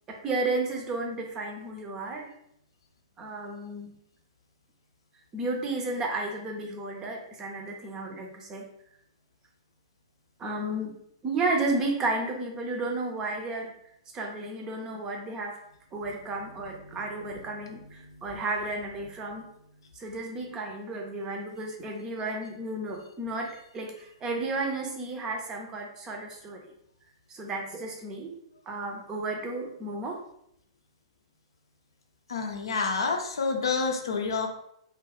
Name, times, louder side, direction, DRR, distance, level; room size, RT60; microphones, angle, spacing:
voice 1, 0.1-2.3 3.2-4.0 5.3-8.7 10.4-11.0 11.2-13.7 14.1-15.6 15.9-19.5 19.9-26.7 27.3-28.3 28.7-30.2, right 2 dB, 25° right, 1 dB, 0.5 m, -33 dB
voice 2, 32.3-34.5, left 4 dB, 65° left, 3 dB, 0.5 m, -28 dB
2.3 x 2.2 x 3.3 m, 0.74 s
figure-of-eight pair, 105°, 3 cm